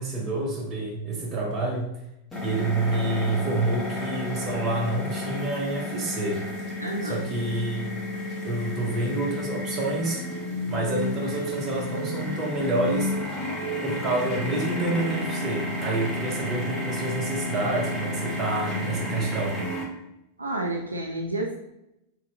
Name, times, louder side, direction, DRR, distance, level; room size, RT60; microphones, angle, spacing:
voice 1, 0.0-1.9 2.4-6.4 7.0-7.9 8.4-10.2 10.7-13.1 13.8-19.6, right 2 dB, 30° right, 0 dB, 1.0 m, -28 dB
sound 1, 2.3-19.8, left 1 dB, 15° left, 1.2 m, -31 dB
voice 2, 6.8-7.3 20.4-21.6, right 2 dB, 80° right, 1 dB, 0.4 m, -30 dB
3.9 x 2.9 x 3.2 m, 0.86 s
figure-of-eight pair, 90°, 0 cm